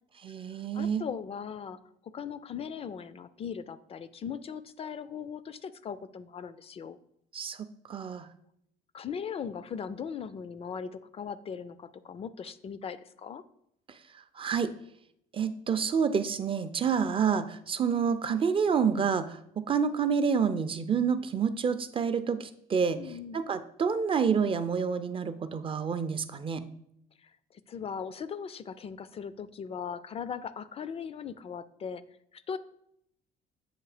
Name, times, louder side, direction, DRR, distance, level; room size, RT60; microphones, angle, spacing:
voice 1, 0.2-1.1 7.3-7.6 7.9-8.3 14.4-14.7 15.3-23.0 23.3-26.6, right 6 dB, 30° right, 12 dB, 0.4 m, -28 dB
voice 2, 0.7-7.0 8.9-13.4 23.0-23.4 27.2-32.0 32.3-32.6, left 7 dB, 35° left, 15 dB, 0.4 m, -39 dB
7.9 x 2.8 x 4.9 m, 0.74 s
cardioid pair, 110°, 17 cm